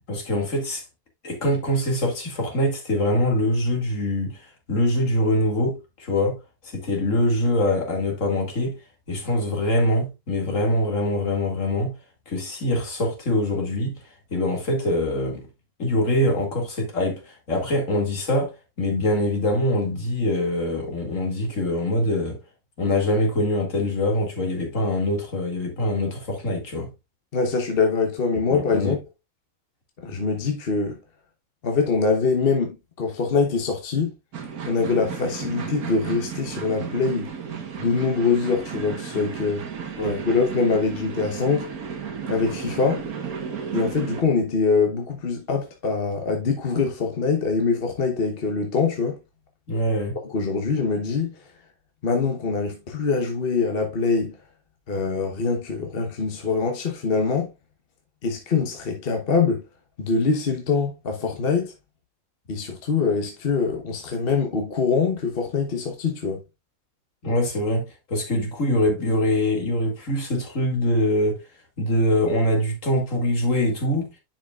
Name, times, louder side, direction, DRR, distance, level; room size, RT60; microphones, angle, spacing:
voice 1, 0.1-0.8 1.2-6.4 6.6-8.8 9.1-11.9 12.3-13.9 14.3-15.5 15.8-22.4 22.8-26.9 28.5-28.9 40.0-40.2 49.7-50.2 67.2-71.4 71.8-74.1, left 1 dB, 60° left, 2.4 m, -24 dB
voice 2, 27.3-29.0 30.0-31.0 31.6-34.1 34.6-37.3 37.8-39.7 40.0-41.7 42.3-43.0 43.7-49.2 50.2-51.5 52.0-54.4 54.9-57.5 58.2-59.6 60.0-61.7 62.5-66.4, left 4 dB, 45° left, 1.1 m, -24 dB
sound 1, 34.3-44.2, right 7 dB, 90° right, 1.7 m, -34 dB
10.5 x 5.0 x 2.3 m
omnidirectional pair, 1.5 m